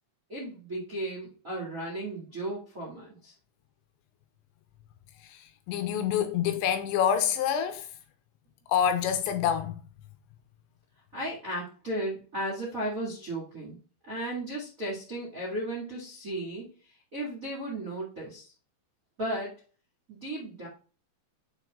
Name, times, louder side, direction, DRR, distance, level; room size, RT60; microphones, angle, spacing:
voice 1, 0.3-3.3 11.1-13.8 14.0-16.6 17.1-18.5 19.2-19.5 20.1-20.7, right 1 dB, 45° right, 1.0 m, -35 dB
voice 2, 5.3-7.9 8.7-9.8, left 8 dB, 80° left, 2.8 m, -27 dB
7.1 x 6.2 x 2.4 m
omnidirectional pair, 5.5 m